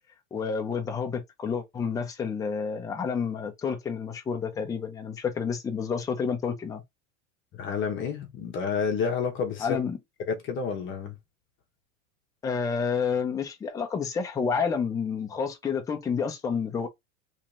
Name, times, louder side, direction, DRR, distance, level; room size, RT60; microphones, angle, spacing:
voice 1, 0.3-6.8 9.6-10.0 12.4-16.9, left 6 dB, 10° left, 0.5 m, -29 dB
voice 2, 7.5-9.8 10.3-11.2, left 6 dB, 30° left, 1.0 m, -29 dB
3.2 x 2.8 x 3.6 m
supercardioid pair, 150°, 42 cm